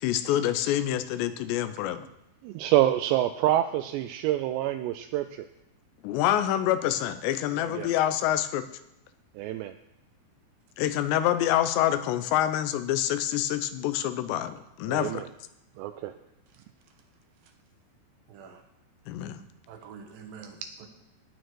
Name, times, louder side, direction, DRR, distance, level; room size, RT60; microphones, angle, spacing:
voice 1, 0.0-2.1 6.0-8.7 10.8-15.2 19.1-19.4, left 12 dB, 85° left, 11 dB, 2.8 m, -26 dB
voice 2, 2.4-5.5 7.7-7.9 9.4-9.8 14.9-15.3 15.8-16.1, right 13 dB, 85° right, 8 dB, 2.6 m, -27 dB
voice 3, 18.3-18.6 19.7-20.9, right 6 dB, 65° right, 5 dB, 2.6 m, -46 dB
18.0 x 6.4 x 4.7 m, 0.87 s
omnidirectional pair, 5.1 m